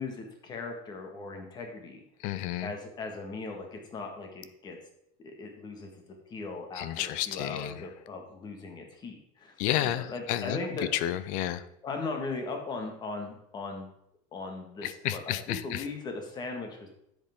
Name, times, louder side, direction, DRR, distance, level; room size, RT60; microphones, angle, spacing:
voice 1, 0.0-2.0 2.6-4.8 5.2-5.9 6.3-9.6 9.8-10.9 11.8-13.9 14.3-16.9, left 3 dB, 25° left, 3 dB, 1.6 m, -38 dB
voice 2, 2.2-2.7 6.8-7.8 9.6-10.6 10.9-11.6 14.8-15.8, left 13 dB, 45° left, 15 dB, 0.6 m, -31 dB
10.5 x 8.0 x 3.6 m, 0.77 s
cardioid pair, 165°, 18 cm